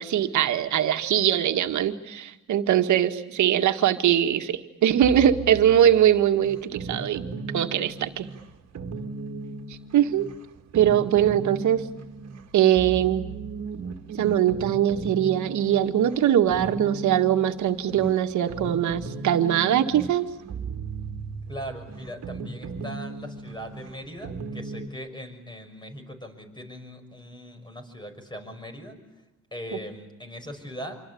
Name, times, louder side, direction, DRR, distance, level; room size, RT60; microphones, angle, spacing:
voice 1, 0.0-7.2 7.5-8.3 9.9-10.3 10.7-11.8 12.5-13.2 14.2-20.3, right 10 dB, 75° right, 6 dB, 1.9 m, -22 dB
sound 1, 5.0-24.9, right 4 dB, 55° right, 2.2 m, -37 dB
voice 2, 21.5-29.0 29.5-31.0, equal, 15° left, 6 dB, 6.2 m, -39 dB
26.5 x 25.0 x 8.6 m, 0.98 s
cardioid pair, 90°, 30 cm